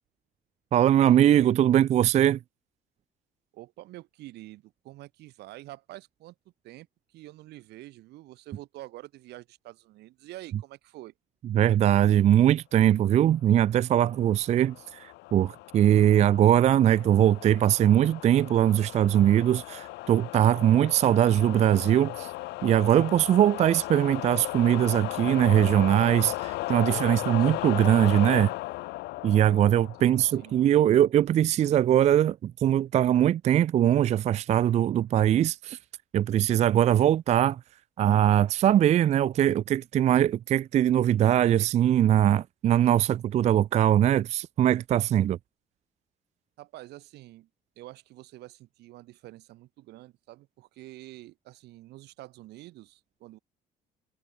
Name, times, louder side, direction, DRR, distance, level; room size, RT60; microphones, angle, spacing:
voice 1, 0.7-2.4 11.5-22.3 22.6-28.5 29.2-35.8 36.1-37.6 38.0-45.4, right 11 dB, 40° right, 0.4 m, -21 dB
voice 2, 3.5-6.3 6.6-6.9 7.1-11.1 26.9-27.5 30.0-30.7 46.6-47.5 47.8-53.4, right 17 dB, 80° right, 1.9 m, -47 dB
sound 1, 14.2-30.6, left 20 dB, 85° left, 1.2 m, -36 dB
cardioid pair, 110°, 17 cm